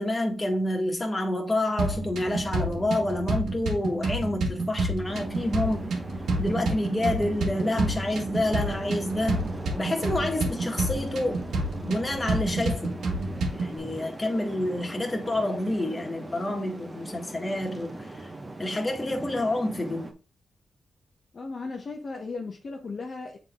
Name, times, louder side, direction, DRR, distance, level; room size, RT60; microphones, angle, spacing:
voice 1, 0.0-6.0 6.4-11.4 11.8-13.0 13.5-18.3 18.6-20.1, left 1 dB, 25° left, 1.7 m, -28 dB
sound 1, 1.8-13.8, right 2 dB, 80° right, 1.6 m, -29 dB
sound 2, 5.1-20.1, right 2 dB, 25° right, 1.2 m, -40 dB
voice 2, 21.3-23.4, left 3 dB, 50° left, 0.9 m, -36 dB
7.4 x 3.8 x 3.6 m
cardioid pair, 65°, 0 cm